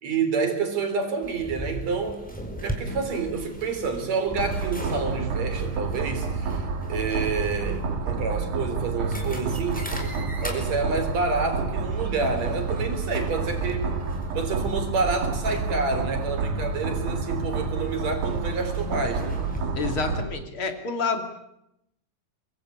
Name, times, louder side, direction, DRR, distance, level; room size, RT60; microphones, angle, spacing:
voice 1, 0.0-2.3 2.6-14.0 14.3-19.4, right 4 dB, 60° right, 7 dB, 4.8 m, -28 dB
sound 1, 1.2-19.6, equal, 5° left, 4.4 m, -39 dB
sound 2, 4.3-20.2, right 4 dB, 80° right, 3.8 m, -29 dB
voice 2, 19.7-21.2, left 4 dB, 45° left, 6 dB, 3.2 m, -28 dB
24.0 x 23.0 x 8.6 m, 0.80 s
omnidirectional pair, 3.5 m